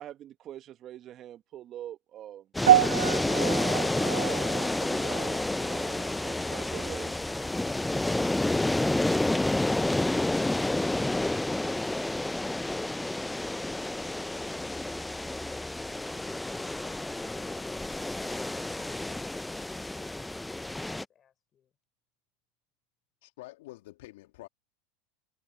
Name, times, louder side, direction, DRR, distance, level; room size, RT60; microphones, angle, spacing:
voice 1, 0.0-2.5 3.3-5.9 6.2-7.3, right 11 dB, 40° right, 1.5 m, -43 dB
sound 1, 2.5-21.0, left 2 dB, 5° left, 0.4 m, -30 dB
sound 2, 2.7-7.1 7.3-7.7 8.4-8.5, right 12 dB, 80° right, 0.3 m, -28 dB
voice 2, 18.4-21.7, left 9 dB, 35° left, 5.0 m, -60 dB
voice 3, 23.2-24.5, left 18 dB, 70° left, 2.0 m, -47 dB
hypercardioid pair, 95°, 0 cm